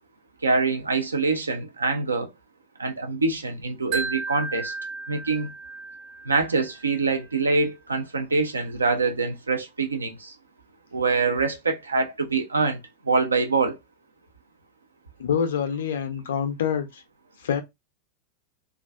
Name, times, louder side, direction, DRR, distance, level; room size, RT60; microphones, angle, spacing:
voice 1, 0.4-2.3 2.8-4.7 5.1-5.5 6.3-10.3 10.9-12.8 13.0-13.8, right 4 dB, 75° right, 0.5 m, -24 dB
Wind chime, 3.9-7.0, right 4 dB, 45° right, 0.9 m, -34 dB
voice 2, 15.2-17.0 17.4-17.6, left 7 dB, 60° left, 0.6 m, -26 dB
2.4 x 2.3 x 2.3 m
figure-of-eight pair, 90°, 0 cm